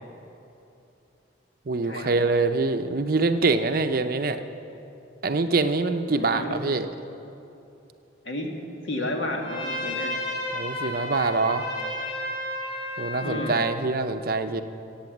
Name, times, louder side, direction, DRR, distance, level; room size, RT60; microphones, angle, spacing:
voice 1, 1.7-4.4 5.2-6.9 10.5-11.7 13.0-14.6, right 3 dB, 50° right, 8 dB, 0.6 m, -24 dB
voice 2, 6.1-6.6 8.2-8.5 8.8-10.1 13.2-13.6, left 1 dB, 75° left, 1 dB, 1.8 m, -31 dB
Trumpet, 9.4-13.7, left 1 dB, 30° left, 2.9 m, -32 dB
15.5 x 8.7 x 7.3 m, 2.8 s
head